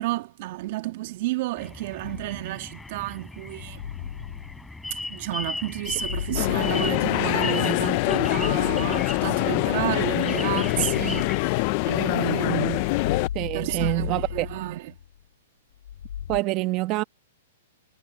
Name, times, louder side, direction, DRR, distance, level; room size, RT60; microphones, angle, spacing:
voice 1, 0.0-3.8 4.9-13.1 13.5-14.9, right 17 dB, 50° right, 2.0 m, -31 dB
sound 1, 1.6-11.4, left 2 dB, 5° left, 7.4 m, -37 dB
sound 2, 2.0-2.7 3.5-5.2 5.7-7.5 8.1-9.6 10.4-12.1 12.7-15.2 15.8-16.4, left 10 dB, 80° left, 5.4 m, -36 dB
sound 3, 6.4-13.3, left 24 dB, 45° left, 0.7 m, -24 dB
voice 2, 13.3-14.5 16.3-17.0, right 19 dB, 35° right, 1.6 m, -26 dB
hypercardioid pair, 145°, 0 cm